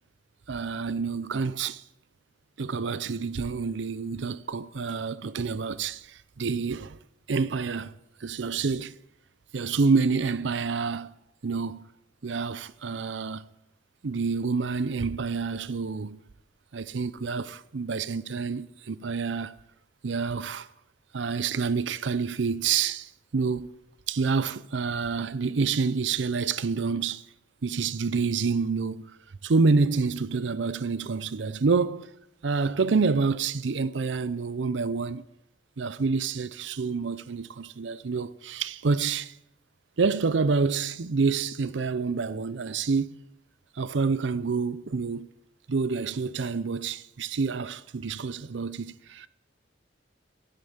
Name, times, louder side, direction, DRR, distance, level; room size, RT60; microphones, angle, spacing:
voice 1, 0.5-1.8 2.6-7.0 7.3-9.0 9.5-11.1 11.4-11.9 12.2-13.5 14.0-16.2 16.7-19.5 20.0-20.7 21.1-23.7 24.1-27.3 27.6-29.2 29.4-32.1 32.4-35.2 35.8-39.4 40.0-43.2 43.8-45.3 45.7-49.3, right 4 dB, 75° right, 0.6 m, -28 dB
11.5 x 10.5 x 8.8 m
head